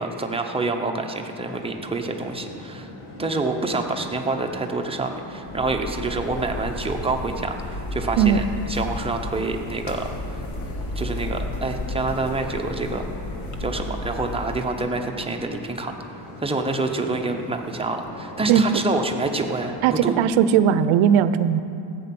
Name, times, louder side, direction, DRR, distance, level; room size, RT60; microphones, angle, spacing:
voice 1, 0.0-2.9 3.2-10.4 11.0-13.1 13.6-20.1, right 3 dB, 10° right, 3 dB, 0.8 m, -27 dB
sound 1, 1.5-20.2, left 1 dB, 90° left, 1.9 m, -41 dB
sound 2, 5.5-14.8, left 2 dB, 35° left, 1.1 m, -33 dB
voice 2, 19.8-21.6, right 9 dB, 75° right, 13 dB, 0.7 m, -18 dB
14.5 x 8.5 x 5.9 m, 2.7 s
cardioid pair, 140°, 49 cm